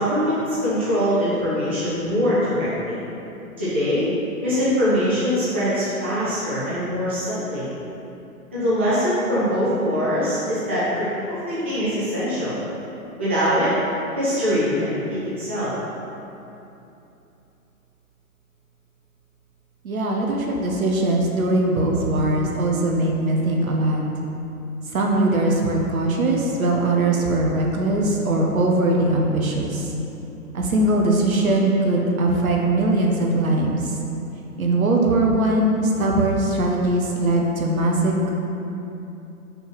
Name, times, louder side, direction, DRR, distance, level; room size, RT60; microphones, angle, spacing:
voice 1, 0.0-3.0 3.6-4.1 4.4-7.7 8.5-12.5 13.2-13.7 14.2-15.7, equal, 10° right, -13 dB, 0.3 m, -23 dB
voice 2, 19.8-24.0 24.9-29.9 30.5-33.9 34.6-38.3, right 2 dB, 65° right, 0 dB, 1.3 m, -21 dB
5.5 x 4.3 x 5.8 m, 2.9 s
figure-of-eight pair, 125°, 44 cm